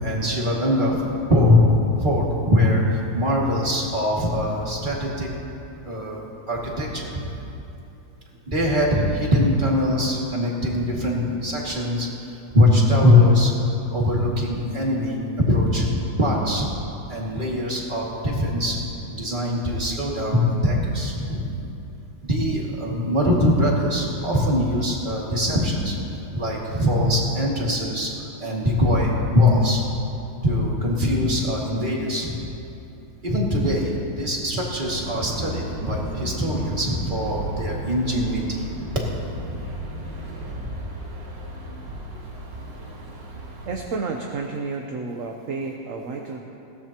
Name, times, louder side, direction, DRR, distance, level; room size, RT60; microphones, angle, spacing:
voice 1, 0.0-1.0 1.3-1.6 2.0-5.3 5.9-6.2 6.5-7.2 8.5-12.1 12.5-13.5 13.9-15.2 15.5-15.9 16.2-16.7 17.1-18.8 19.1-21.5 22.3-26.0 26.3-28.1 28.4-29.9 30.4-32.4 33.2-38.6, left 1 dB, 25° right, -4 dB, 2.3 m, -22 dB
sound 1, 34.8-43.7, right 1 dB, 70° right, 2.3 m, -34 dB
voice 2, 43.7-46.4, right 4 dB, 55° right, 1 dB, 1.1 m, -31 dB
20.5 x 17.0 x 3.0 m, 2.9 s
omnidirectional pair, 2.0 m